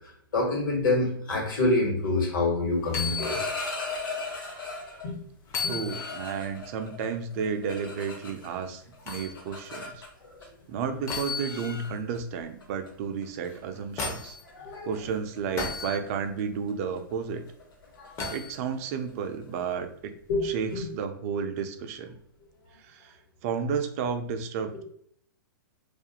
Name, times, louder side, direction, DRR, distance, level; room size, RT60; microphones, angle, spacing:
voice 1, 0.3-3.4 5.0-5.2 5.6-5.7 10.4-10.5 14.4-14.9 18.0-18.3 20.3-20.8, left 2 dB, 70° left, -1 dB, 1.2 m, -27 dB
sound 1, 2.8-3.5 4.0-4.1 5.5-6.5 9.1-9.3 11.1-12.0 13.5-14.4 15.6-16.0 18.2-18.5 20.3-20.5, left 4 dB, 25° left, 0.5 m, -34 dB
sound 2, 3.1-5.1 5.6-8.7 8.9-10.5 11.4-11.5 11.8-12.2 12.6-12.9 13.2-13.5 13.7-14.0 14.3-19.7, left 3 dB, 85° left, 0.7 m, -38 dB
voice 2, 5.7-10.0 10.7-14.4 14.9-17.4 18.3-20.1 20.4-22.1 22.8-23.2 23.4-24.8, right 6 dB, 45° right, 8 dB, 0.3 m, -32 dB
2.4 x 2.2 x 2.7 m, 0.65 s
hypercardioid pair, 130°, 11 cm